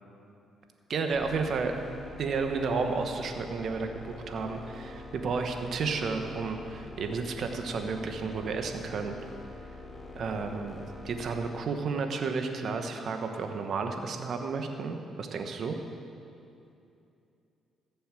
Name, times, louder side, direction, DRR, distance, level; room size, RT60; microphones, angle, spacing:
voice 1, 0.9-1.8 2.2-9.2 10.2-10.8 11.0-15.8, right 4 dB, 60° right, 5 dB, 1.3 m, -32 dB
sound 1, 1.1-11.5, left 2 dB, 15° left, 2.2 m, -45 dB
15.0 x 7.1 x 7.6 m, 2.7 s
cardioid pair, 90°, 0 cm